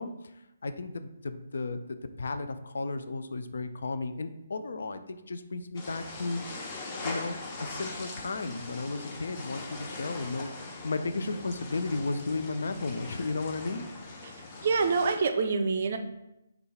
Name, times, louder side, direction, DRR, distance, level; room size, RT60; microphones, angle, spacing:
voice 1, 0.0-6.4 7.0-13.8, left 3 dB, 65° left, 10 dB, 0.3 m, -34 dB
sound 1, 5.7-15.1, left 3 dB, 30° left, 0.9 m, -41 dB
voice 2, 14.6-16.0, right 4 dB, 50° right, 7 dB, 0.4 m, -26 dB
3.8 x 2.3 x 4.3 m, 0.90 s
figure-of-eight pair, 140°, 0 cm